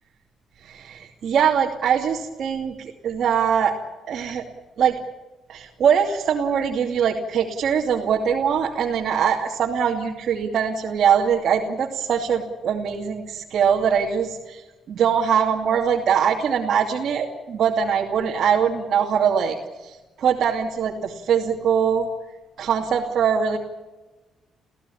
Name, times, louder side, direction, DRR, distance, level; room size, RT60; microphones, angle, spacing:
voice 1, 0.6-3.8 4.0-4.5 4.8-5.0 5.5-14.6 14.9-19.6 19.8-22.1 22.6-23.6, right 7 dB, 65° right, -1 dB, 2.7 m, -22 dB
29.5 x 16.0 x 8.7 m, 1.2 s
cardioid pair, 90°, 0 cm